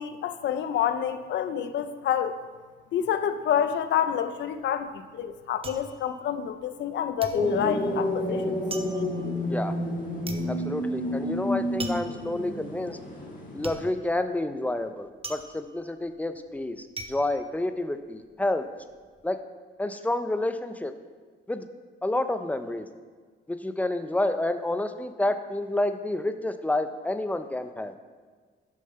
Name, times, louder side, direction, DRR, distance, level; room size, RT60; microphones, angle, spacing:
voice 1, 0.0-2.3 2.9-8.6, left 9 dB, 65° left, 11 dB, 0.6 m, -28 dB
sound 1, 4.5-6.9 7.2-18.3 18.7-19.2, right 3 dB, 30° right, 0.7 m, -42 dB
sound 2, 7.3-13.9, left 1 dB, 45° left, 1.5 m, -30 dB
voice 2, 10.5-13.0 13.5-18.6 19.2-19.4 19.8-20.9 21.5-21.7 22.0-22.9 23.5-27.9, left 1 dB, 5° left, 9 dB, 0.5 m, -29 dB
6.5 x 5.3 x 5.6 m, 1.5 s
cardioid pair, 90°, 20 cm